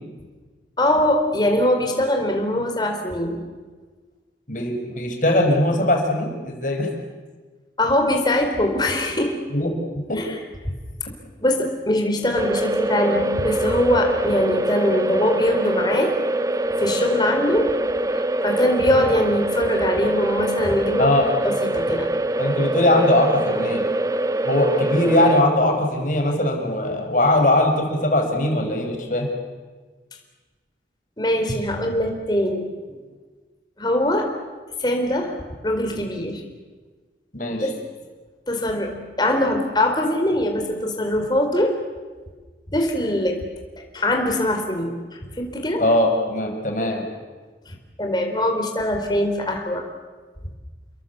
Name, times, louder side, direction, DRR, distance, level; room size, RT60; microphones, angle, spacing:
voice 1, 0.8-3.4 7.8-9.3 10.1-10.4 11.4-16.1 16.8-17.7 18.1-21.1 21.4-22.1 31.2-32.7 33.8-34.3 34.8-35.4 35.6-36.4 37.6-37.7 38.5-41.8 42.7-43.4 43.9-45.8 47.7-49.8, left 1 dB, 25° left, 3 dB, 4.3 m, -22 dB
voice 2, 4.5-6.9 9.5-9.7 10.1-10.2 21.0-21.3 22.4-23.9 24.5-29.3 37.3-37.7 45.8-47.1, left 1 dB, 45° left, 3 dB, 5.5 m, -20 dB
sound 1, 12.3-25.4, right 1 dB, 20° right, 0.7 m, -24 dB
30.0 x 21.5 x 8.3 m, 1.4 s
head